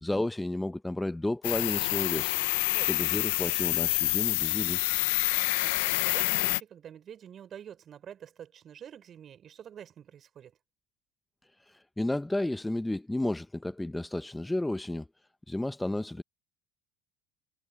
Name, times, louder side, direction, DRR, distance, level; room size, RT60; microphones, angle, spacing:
voice 1, 0.0-2.3 2.9-4.8 11.7-15.1 15.5-16.2, left 1 dB, 10° left, 0.9 m, -32 dB
sound 1, 1.4-6.6, left 22 dB, 75° left, 1.0 m, -27 dB
voice 2, 5.4-10.5, right 9 dB, 40° right, 6.0 m, -47 dB
hypercardioid pair, 85°, 0 cm